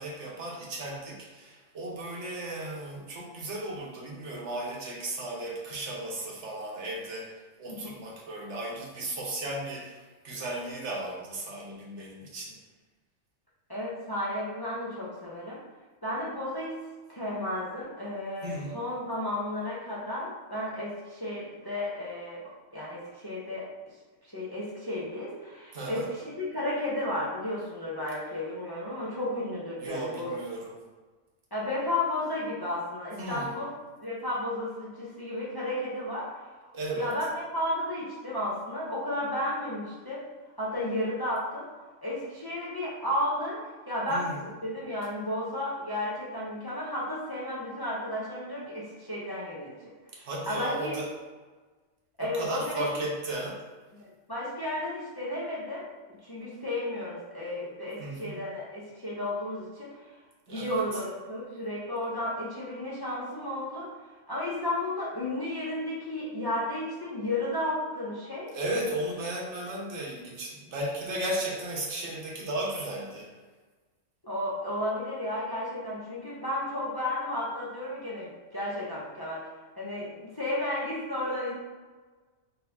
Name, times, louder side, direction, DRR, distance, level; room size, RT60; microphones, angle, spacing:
voice 1, 0.0-12.6 18.4-18.8 25.7-26.1 29.8-30.8 33.2-33.5 36.7-37.1 44.1-44.5 50.1-51.1 52.2-53.6 58.0-58.4 60.5-60.8 68.5-73.3, right 1 dB, 65° right, -2 dB, 1.2 m, -35 dB
voice 2, 13.7-15.6 16.0-16.8 17.1-22.4 22.7-23.6 24.3-30.4 31.5-33.7 34.0-36.3 36.9-40.2 40.6-41.7 42.0-43.6 43.9-49.8 50.2-51.0 52.2-52.9 53.9-55.9 56.2-60.1 60.5-63.9 64.3-68.5 74.2-79.5 79.8-81.5, left 1 dB, 20° left, -7 dB, 0.8 m, -33 dB
4.0 x 3.8 x 2.8 m, 1.3 s
omnidirectional pair, 1.3 m